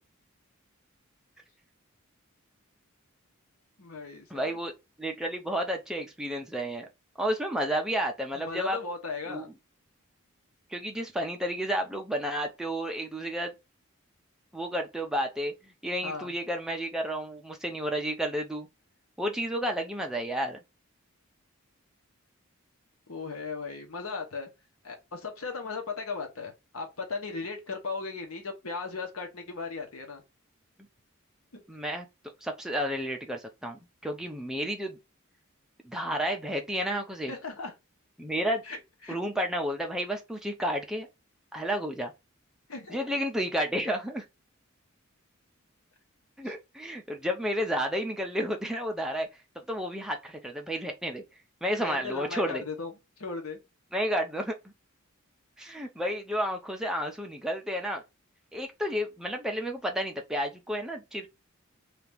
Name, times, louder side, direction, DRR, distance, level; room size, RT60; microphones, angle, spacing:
voice 1, 3.8-4.6 8.3-9.5 16.0-16.3 23.1-24.5 24.8-30.2 31.5-31.6 37.3-37.7 38.7-39.2 42.7-43.1 51.7-52.9 53.2-53.6, left 4 dB, 85° left, 1.0 m, -37 dB
voice 2, 4.3-4.7 5.0-6.9 7.2-8.8 9.3-9.5 10.7-13.5 14.5-18.7 19.2-20.6 31.7-32.1 32.4-35.0 35.8-37.3 38.2-38.6 39.1-41.1 41.5-42.1 42.9-44.2 46.4-49.3 49.7-51.2 51.6-52.6 53.9-54.6 55.6-58.0 58.5-61.3, equal, 5° right, 0.5 m, -31 dB
2.8 x 2.5 x 3.3 m
head